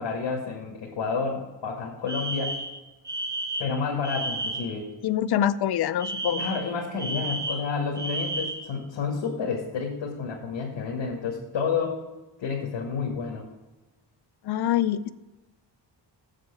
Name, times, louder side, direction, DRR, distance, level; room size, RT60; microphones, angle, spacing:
voice 1, 0.0-2.5 3.6-4.9 6.3-12.0 12.4-13.4, left 5 dB, 80° left, -2 dB, 1.7 m, -30 dB
Alarm, 2.1-4.8 6.0-8.7, right 2 dB, 10° right, 0.6 m, -32 dB
voice 2, 5.0-6.4 14.4-15.1, left 10 dB, 60° left, 12 dB, 0.5 m, -25 dB
7.6 x 7.4 x 5.9 m, 1.1 s
wide cardioid pair, 150°, 43 cm